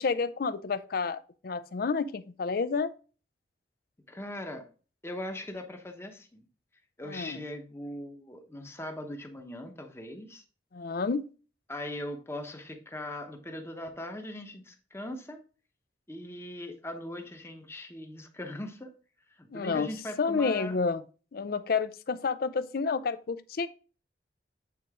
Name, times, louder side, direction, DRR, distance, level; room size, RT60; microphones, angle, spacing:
voice 1, 0.0-2.9 7.0-7.4 10.7-11.3 19.5-19.9 20.2-21.0 21.3-23.7, left 4 dB, 55° left, 0.5 m, -30 dB
voice 2, 4.1-4.6 5.0-6.5 7.0-10.4 11.7-15.4 16.1-18.9 19.3-20.8, left 1 dB, 15° left, 0.9 m, -40 dB
8.5 x 3.9 x 3.6 m
head